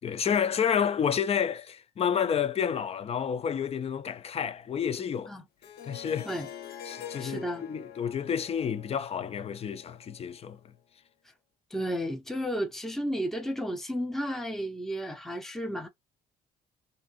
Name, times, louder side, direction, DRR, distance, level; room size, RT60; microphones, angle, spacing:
voice 1, 0.0-5.3 5.8-6.3 6.9-10.6, left 8 dB, 35° left, 0.6 m, -30 dB
Harp, 5.6-10.6, left 8 dB, 70° left, 0.9 m, -46 dB
voice 2, 7.2-7.6 11.7-15.9, equal, ahead, 0.7 m, -32 dB
4.1 x 2.7 x 2.5 m
cardioid pair, 110°, 17 cm